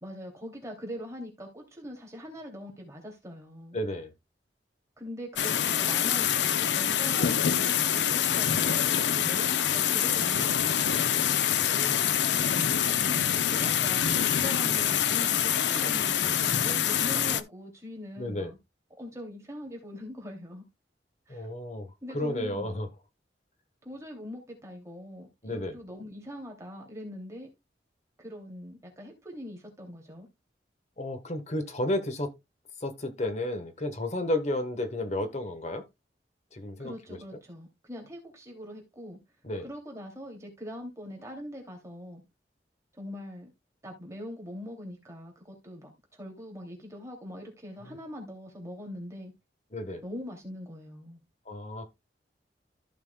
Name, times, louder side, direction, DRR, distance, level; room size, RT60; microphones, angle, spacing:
voice 1, 0.0-3.8 5.0-10.9 12.3-18.6 19.0-20.6 21.3-21.5 22.0-22.8 23.8-27.5 28.2-30.3 36.8-39.2 39.6-42.2 42.9-43.5 43.8-49.3 50.0-51.2, equal, 15° right, 2.8 m, -42 dB
voice 2, 3.7-4.1 8.5-8.6 11.6-12.1 18.2-18.5 21.3-22.9 25.4-25.8 31.0-32.3 32.8-35.8 36.5-37.2 39.4-39.7 47.8-48.0 49.7-50.0 51.5-51.9, left 1 dB, 40° left, 1.3 m, -32 dB
sound 1, 5.4-17.4, left 9 dB, 80° left, 0.7 m, -25 dB
14.5 x 5.9 x 2.3 m
head